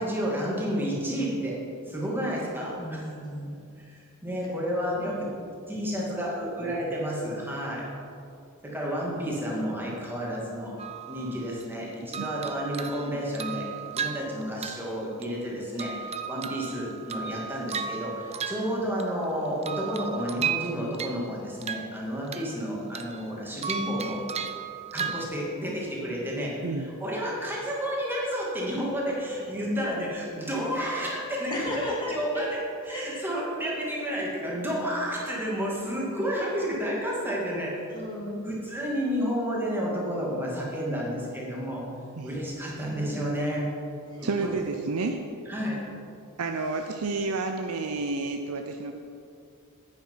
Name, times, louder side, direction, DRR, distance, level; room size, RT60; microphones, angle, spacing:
voice 1, 0.0-1.6 1.9-3.0 3.8-5.3 5.7-7.8 8.6-10.7 11.1-24.2 24.9-26.5 27.0-37.7 38.4-41.8 42.2-43.6 44.2-44.5 45.5-45.8, equal, 10° right, -4 dB, 2.4 m, -31 dB
voice 2, 2.8-3.5 31.5-32.4 32.9-33.3 37.9-38.6 44.1-44.3, left 1 dB, 20° left, -4 dB, 2.6 m, -34 dB
sound 1, 10.8-11.7 12.1-15.5 15.8-19.2 19.6-21.3 21.6-22.6 22.9-25.3, right 7 dB, 30° right, 0.5 m, -35 dB
voice 3, 44.2-45.2 46.4-49.0, right 3 dB, 75° right, 5 dB, 0.6 m, -30 dB
9.1 x 8.9 x 5.7 m, 2.5 s
head